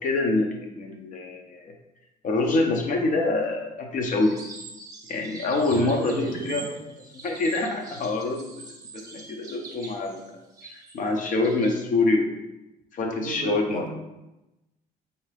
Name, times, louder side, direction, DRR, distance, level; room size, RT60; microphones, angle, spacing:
voice 1, 0.0-1.7 2.2-4.4 5.1-6.7 7.2-8.6 8.9-10.2 10.6-12.3 12.9-13.9, left 2 dB, 50° left, 2 dB, 0.7 m, -25 dB
sound 1, 4.2-11.8, right 3 dB, 20° right, 0.7 m, -44 dB
voice 2, 5.7-6.7 13.1-13.9, right 4 dB, 55° right, 6 dB, 0.5 m, -34 dB
3.7 x 2.8 x 3.3 m, 0.95 s
cardioid pair, 110°, 17 cm